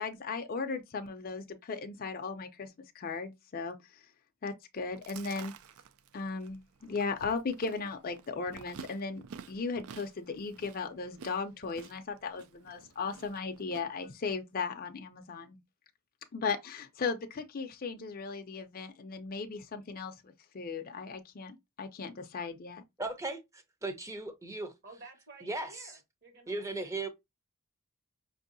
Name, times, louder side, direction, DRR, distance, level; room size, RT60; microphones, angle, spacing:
voice 1, 0.0-4.0 4.4-5.5 6.1-15.6 16.3-22.8, left 4 dB, 40° left, 0.5 m, -37 dB
Chewing mastication, 4.8-13.8, right 6 dB, 65° right, 0.4 m, -51 dB
voice 2, 23.0-24.7 25.4-25.9 26.5-27.1, right 2 dB, 15° right, 0.6 m, -37 dB
voice 3, 24.8-27.1, right 3 dB, 45° right, 1.3 m, -53 dB
5.4 x 2.7 x 2.6 m
head